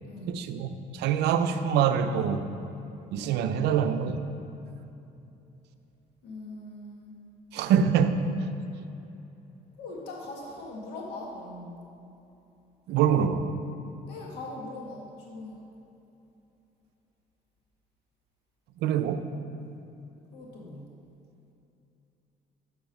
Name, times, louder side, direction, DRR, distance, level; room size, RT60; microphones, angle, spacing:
voice 1, 0.3-2.5 3.1-4.2 7.5-8.3 12.9-13.5 18.8-19.3, right 8 dB, 80° right, 9 dB, 0.5 m, -25 dB
voice 2, 6.2-7.2 9.8-11.8 14.0-15.6 20.3-20.8, left 2 dB, 80° left, -2 dB, 1.6 m, -41 dB
6.9 x 6.1 x 5.3 m, 2.8 s
cardioid pair, 110°, 17 cm